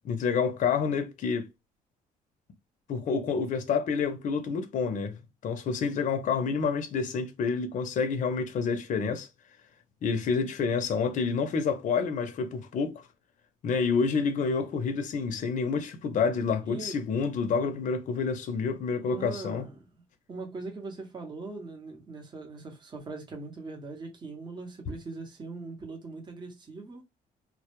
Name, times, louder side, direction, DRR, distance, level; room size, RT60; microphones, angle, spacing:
voice 1, 0.0-1.5 2.9-5.2 5.4-9.3 10.0-13.0 13.6-19.7, left 5 dB, 50° left, 0.5 m, -28 dB
voice 2, 16.7-17.0 19.1-20.0 20.3-27.0, right 3 dB, 25° right, 0.7 m, -41 dB
2.0 x 2.0 x 2.9 m
cardioid pair, 110°, 17 cm